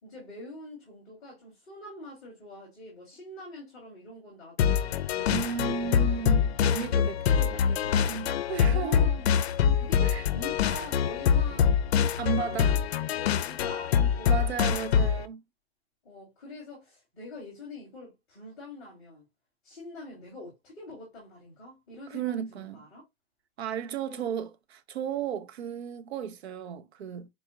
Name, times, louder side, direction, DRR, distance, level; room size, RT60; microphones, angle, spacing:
voice 1, 0.0-6.3 8.7-11.8 12.1-12.8 13.1-14.4 16.0-19.2 19.6-23.0 24.1-24.2, left 2 dB, 5° left, 0.4 m, -45 dB
sound 1, 4.6-15.3, left 7 dB, 80° left, 0.5 m, -25 dB
voice 2, 5.3-9.1 10.0-10.3 12.2-12.7 14.3-15.4 22.1-22.8 23.6-27.3, right 7 dB, 90° right, 0.6 m, -34 dB
4.2 x 2.3 x 2.8 m
hypercardioid pair, 180°, 31 cm